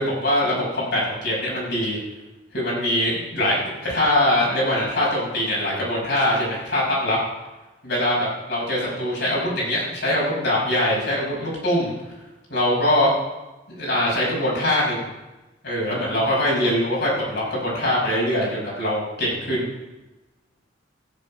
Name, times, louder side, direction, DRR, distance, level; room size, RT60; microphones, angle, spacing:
voice 1, 0.0-2.0 2.5-7.2 7.8-11.9 12.5-13.1 13.8-15.1 15.6-19.7, left 1 dB, 60° left, -4 dB, 5.9 m, -23 dB
13.5 x 10.0 x 5.4 m, 1.1 s
head